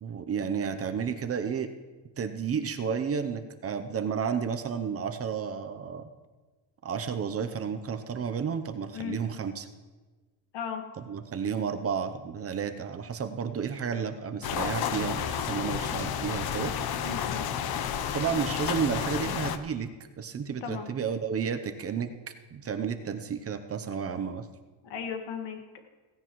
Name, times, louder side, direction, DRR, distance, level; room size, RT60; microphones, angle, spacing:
voice 1, 0.0-1.7 2.2-6.1 6.8-9.7 11.1-16.7 18.1-19.9 20.2-22.1 22.5-24.5, right 6 dB, 35° right, 8 dB, 0.7 m, -32 dB
sound 1, 14.4-19.6, left 8 dB, 60° left, 0.9 m, -31 dB
voice 2, 17.0-17.5 20.6-20.9 24.8-25.8, left 7 dB, 80° left, 4 dB, 1.9 m, -36 dB
16.5 x 16.0 x 3.1 m, 1.3 s
cardioid pair, 150°, 42 cm